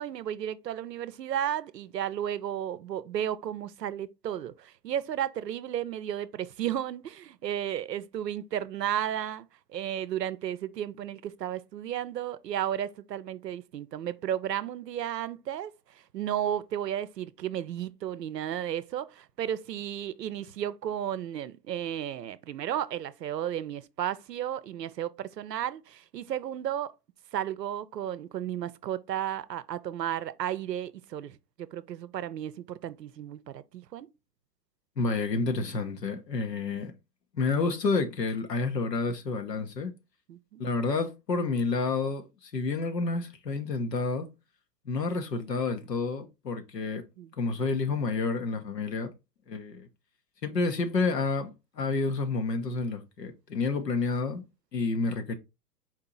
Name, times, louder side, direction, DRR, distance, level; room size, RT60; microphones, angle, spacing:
voice 1, 0.0-9.5 9.7-26.9 27.3-34.1 40.3-40.7 47.2-47.3, right 10 dB, 85° right, 0.6 m, -33 dB
voice 2, 35.0-36.9 37.3-39.9 40.6-44.3 44.8-47.0 47.4-49.1 49.5-49.9 50.4-54.4 54.7-55.4, left 3 dB, 85° left, 1.1 m, -29 dB
4.6 x 2.9 x 3.7 m
hypercardioid pair, 110°, 48 cm